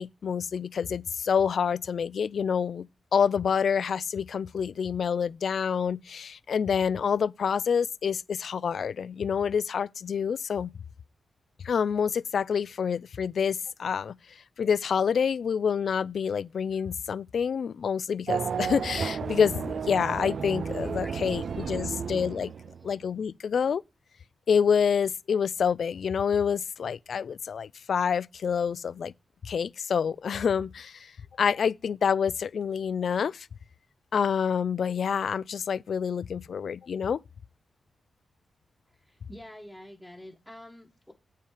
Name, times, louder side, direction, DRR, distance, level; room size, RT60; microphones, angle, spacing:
voice 1, 0.0-2.9 3.1-10.7 11.6-14.1 14.6-22.5 22.8-23.8 24.5-29.1 29.4-31.1 31.4-33.5 34.1-37.2, left 7 dB, 65° left, 0.4 m, -27 dB
Race car auto racing / Accelerating revving vroom, 18.3-23.0, right 6 dB, 60° right, 0.5 m, -33 dB
voice 2, 21.0-21.7 38.9-41.1, left 1 dB, 5° left, 1.3 m, -48 dB
9.0 x 5.6 x 4.9 m
wide cardioid pair, 145°, 0 cm